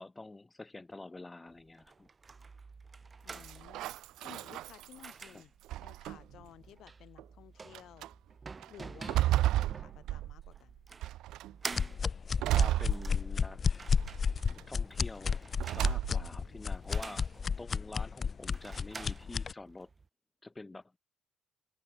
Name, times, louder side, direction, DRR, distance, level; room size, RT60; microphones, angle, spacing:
voice 1, 0.0-2.1 12.5-13.6 14.5-15.4 15.6-17.3 17.6-19.9 20.4-20.9, left 2 dB, 15° left, 2.2 m, -47 dB
sound 1, 1.5-20.1, right 4 dB, 30° right, 0.8 m, -49 dB
voice 2, 3.2-5.5 5.8-8.1 8.7-10.8 19.2-19.3, left 12 dB, 70° left, 5.3 m, -55 dB
sound 2, 3.3-5.2 5.7-6.4 7.2-7.3 7.7-8.1 8.6-10.6 11.0-11.5 12.4-13.6 14.0-14.6 15.6-16.4, right 14 dB, 75° right, 0.4 m, -32 dB
sound 3, 11.7-19.5, left 6 dB, 40° left, 0.8 m, -32 dB
cardioid pair, 90°, 0 cm